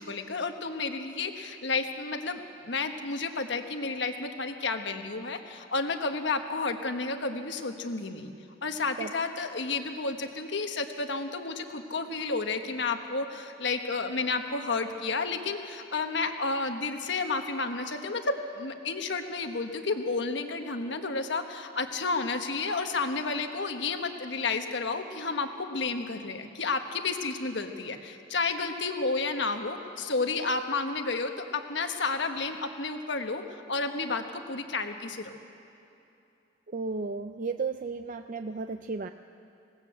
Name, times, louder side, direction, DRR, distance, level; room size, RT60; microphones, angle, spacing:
voice 1, 0.0-8.3 8.6-33.4 33.7-35.3, left 3 dB, 65° left, 6 dB, 1.3 m, -31 dB
voice 2, 36.7-39.1, right 4 dB, 45° right, 8 dB, 0.5 m, -34 dB
20.0 x 17.5 x 8.0 m, 2.8 s
head